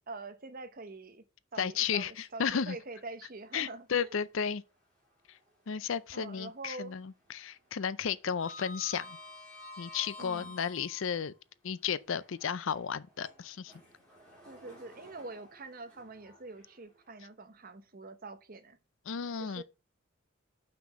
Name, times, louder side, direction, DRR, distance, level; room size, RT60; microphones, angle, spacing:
voice 1, 0.1-1.2 1.5-4.2 6.1-6.9 10.2-10.6 14.4-18.8 19.4-19.6, right 3 dB, 40° right, 0.9 m, -45 dB
voice 2, 1.6-2.8 3.5-4.6 5.7-9.2 9.8-11.3 11.6-13.7 19.1-19.6, left 7 dB, 60° left, 0.5 m, -33 dB
Sliding door, 2.1-3.0 3.4-3.5 5.2-6.3 6.6-6.9 7.2-11.3 12.0-17.2, left 1 dB, 5° left, 3.4 m, -51 dB
6.0 x 5.7 x 6.2 m
head